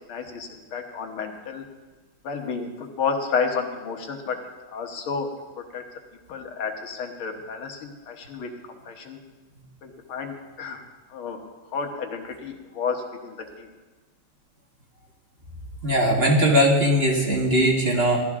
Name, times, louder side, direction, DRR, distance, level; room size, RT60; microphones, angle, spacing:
voice 1, 0.1-1.6 2.2-4.4 4.7-5.9 6.3-8.5 8.9-9.2 9.8-10.8 11.1-11.4 11.7-13.7, left 5 dB, 85° left, 3 dB, 2.2 m, -31 dB
voice 2, 15.8-18.2, equal, 30° right, -2 dB, 1.8 m, -20 dB
15.0 x 13.0 x 3.7 m, 1.3 s
omnidirectional pair, 2.3 m